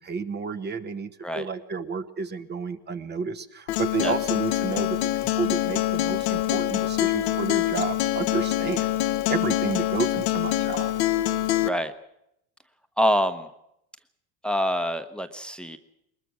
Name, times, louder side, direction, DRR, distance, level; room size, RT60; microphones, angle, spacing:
voice 1, 0.0-10.9, right 5 dB, 35° right, 10 dB, 1.3 m, -31 dB
Acoustic guitar, 3.7-11.7, left 14 dB, 85° left, 1.1 m, -25 dB
voice 2, 13.0-13.5 14.4-15.8, equal, 5° left, 9 dB, 1.1 m, -25 dB
21.5 x 20.5 x 6.2 m, 0.79 s
supercardioid pair, 100°, 30 cm